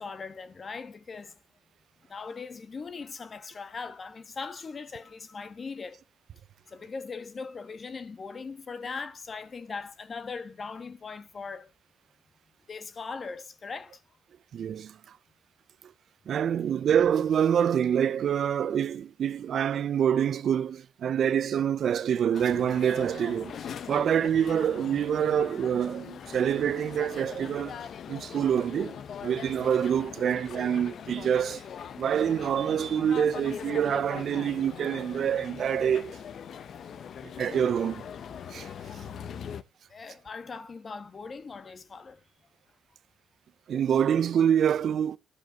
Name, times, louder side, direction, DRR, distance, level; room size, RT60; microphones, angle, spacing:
voice 1, 0.0-1.4 2.1-6.0 6.7-11.7 12.7-14.0 39.9-42.2, left 4 dB, 40° left, 1.5 m, -40 dB
voice 2, 14.5-15.0 16.3-23.6 23.9-27.8 28.1-31.6 32.0-36.2 37.2-38.0 38.5-38.7 43.7-45.2, right 9 dB, 60° right, 0.6 m, -26 dB
sound 1, 22.3-39.6, left 8 dB, 60° left, 0.9 m, -41 dB
13.0 x 4.7 x 6.4 m
cardioid pair, 90°, 0 cm